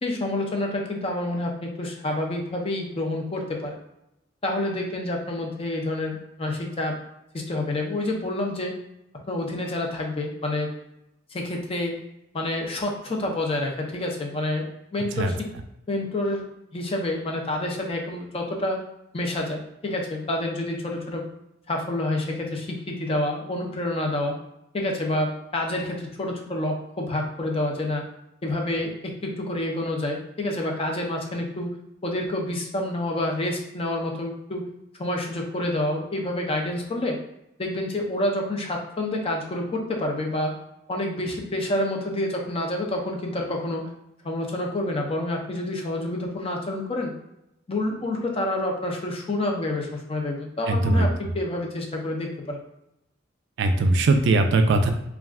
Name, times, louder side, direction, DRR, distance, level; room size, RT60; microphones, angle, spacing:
voice 1, 0.0-3.8 4.4-7.0 7.3-8.8 9.3-10.7 11.3-12.0 12.3-14.6 14.9-15.5 15.9-16.4 16.7-18.8 19.1-21.3 21.7-24.4 24.7-28.0 28.4-31.7 32.0-34.7 35.0-37.2 37.6-40.5 40.9-43.9 44.2-47.1 47.7-52.6, left 1 dB, 30° left, 1 dB, 0.5 m, -28 dB
voice 2, 50.7-51.1 53.6-54.9, right 2 dB, 65° right, 6 dB, 0.4 m, -20 dB
2.4 x 2.3 x 3.4 m, 0.84 s
head